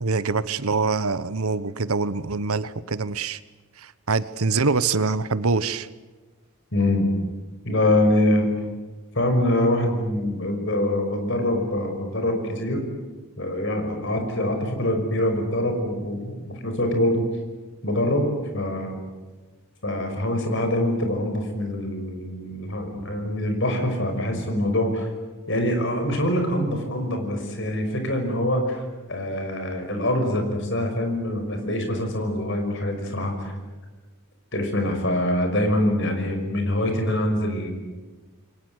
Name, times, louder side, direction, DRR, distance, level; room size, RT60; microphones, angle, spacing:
voice 1, 0.0-3.4 3.8-5.9, right 4 dB, 75° right, 15 dB, 1.0 m, -24 dB
voice 2, 6.7-7.1 7.6-8.5 9.1-12.8 13.4-17.2 17.8-18.3 18.5-19.0 19.8-25.1 25.5-33.5 34.5-37.7, left 1 dB, 55° left, 5 dB, 6.0 m, -24 dB
28.5 x 23.0 x 8.2 m, 1.3 s
head